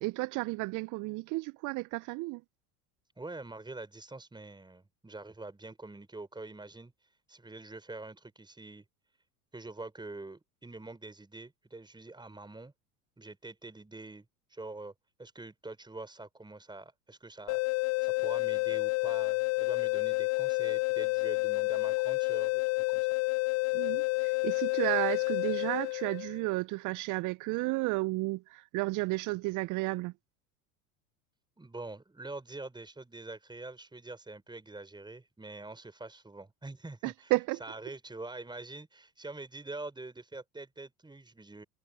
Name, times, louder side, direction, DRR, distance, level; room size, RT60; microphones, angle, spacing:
voice 1, 0.0-2.4 23.7-30.1 37.0-37.6, right 23 dB, 45° right, 0.7 m, -32 dB
voice 2, 3.2-6.9 7.3-8.8 9.5-12.7 13.2-14.3 14.5-14.9 15.2-22.6 22.9-23.1 31.6-37.3 37.6-41.6, right 2 dB, 10° right, 5.6 m, -45 dB
sound 1, 17.5-26.4, left 28 dB, 40° left, 0.4 m, -30 dB
hypercardioid pair, 80°, 45 cm